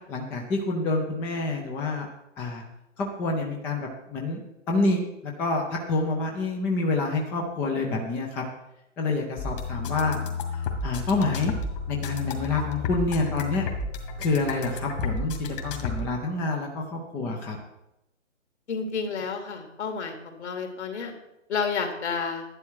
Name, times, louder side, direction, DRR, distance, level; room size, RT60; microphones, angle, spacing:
voice 1, 0.1-2.1 2.4-2.6 3.0-4.4 4.7-8.4 9.0-10.2 10.5-11.5 11.9-13.7 14.2-17.6, left 3 dB, 5° left, 1 dB, 0.4 m, -27 dB
sound 1, 9.4-16.0, left 4 dB, 45° left, 2.2 m, -32 dB
voice 2, 18.7-21.1 21.5-22.4, left 5 dB, 65° left, 4 dB, 2.9 m, -30 dB
11.0 x 11.0 x 4.6 m, 0.86 s
hypercardioid pair, 135°, 37 cm